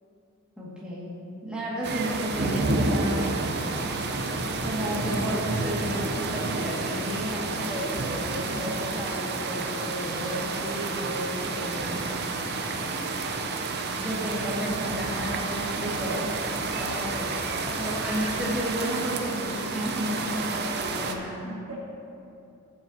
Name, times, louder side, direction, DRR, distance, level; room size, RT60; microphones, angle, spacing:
voice 1, 0.6-3.6 4.6-12.1 14.0-16.3 16.6-17.3 17.8-21.7, equal, 5° right, -8 dB, 1.9 m, -33 dB
sound 1, 1.8-21.1, right 3 dB, 50° right, 0.6 m, -30 dB
sound 2, 3.2-20.2, left 2 dB, 40° left, 0.9 m, -47 dB
voice 2, 12.7-13.2 15.8-16.2 16.6-17.1 17.5-18.0 21.7-21.8, equal, 70° right, -5 dB, 2.1 m, -41 dB
13.5 x 7.4 x 2.8 m, 2.7 s
head